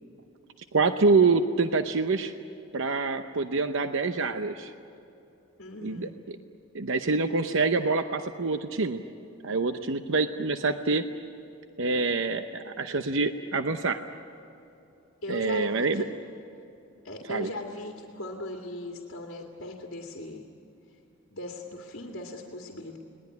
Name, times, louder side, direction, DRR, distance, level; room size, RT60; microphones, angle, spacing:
voice 1, 0.7-2.3 2.7-4.7 5.8-6.1 6.7-9.0 9.4-11.0 11.8-14.0 15.3-16.0 17.3-17.5, right 3 dB, 65° right, 8 dB, 0.8 m, -26 dB
voice 2, 5.6-6.1 15.2-16.1 17.0-20.4 21.3-23.0, left 1 dB, 60° left, 1 dB, 2.2 m, -38 dB
30.0 x 20.0 x 9.5 m, 2.8 s
head